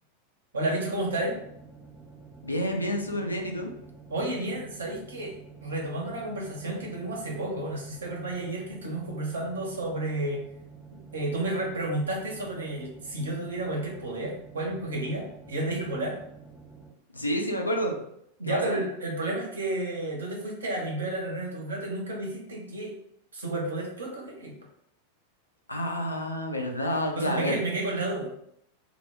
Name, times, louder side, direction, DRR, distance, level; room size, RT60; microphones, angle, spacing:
voice 1, 0.5-1.4 4.1-10.4 11.1-16.2 18.4-22.9 23.3-24.5 27.1-28.3, right 2 dB, 70° right, -1 dB, 0.7 m, -31 dB
sound 1, 0.9-16.9, right 5 dB, ahead, 0.4 m, -49 dB
voice 2, 2.4-3.7 17.1-18.0 18.5-18.8 25.7-27.6, equal, 85° left, 2 dB, 0.4 m, -29 dB
2.0 x 2.0 x 3.4 m, 0.74 s
figure-of-eight pair, 90°, 0 cm